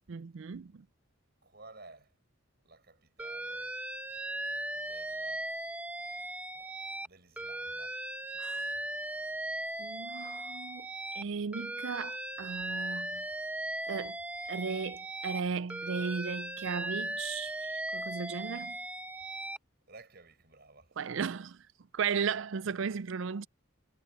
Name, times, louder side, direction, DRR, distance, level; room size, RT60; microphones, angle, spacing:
voice 1, 0.1-0.8 8.4-8.6 9.8-10.9 11.1-13.2 13.8-14.2 14.5-18.8 21.0-21.6 21.9-23.5, right 6 dB, 65° right, 0.4 m, -36 dB
voice 2, 1.4-2.2 2.6-3.8 4.7-5.5 6.5-6.8 7.0-9.1 19.9-21.0, right 3 dB, 50° right, 6.4 m, -55 dB
Alarm, 3.2-7.1 7.4-11.2 11.5-15.4 15.7-19.6, right 1 dB, 5° right, 0.9 m, -38 dB
head